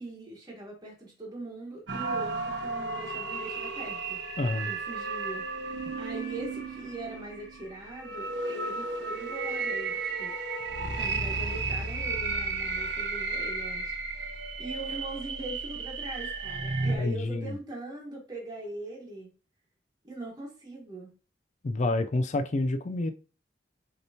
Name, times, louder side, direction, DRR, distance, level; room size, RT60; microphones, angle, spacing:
voice 1, 0.0-4.2 4.7-10.3 10.7-14.3 14.6-19.3 20.0-21.1, right 2 dB, 20° right, 1.2 m, -41 dB
sound 1, 1.9-17.0, right 3 dB, 85° right, 0.9 m, -33 dB
voice 2, 4.4-4.7 17.0-17.5 21.6-23.1, left 2 dB, 40° left, 0.4 m, -28 dB
6.5 x 3.0 x 2.7 m
head